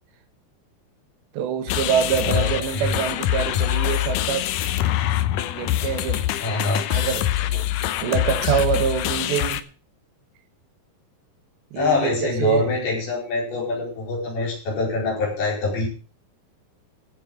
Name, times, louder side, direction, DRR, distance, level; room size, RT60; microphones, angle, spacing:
voice 1, 1.3-4.5 5.5-6.3 6.9-7.7 8.0-9.7 11.7-12.7, right 9 dB, 85° right, 3.6 m, -25 dB
sound 1, 1.7-9.6, left 13 dB, 90° left, 1.8 m, -24 dB
voice 2, 2.2-3.0 6.4-6.9 11.8-15.9, left 3 dB, 60° left, 6.5 m, -25 dB
15.0 x 7.6 x 6.3 m
omnidirectional pair, 4.9 m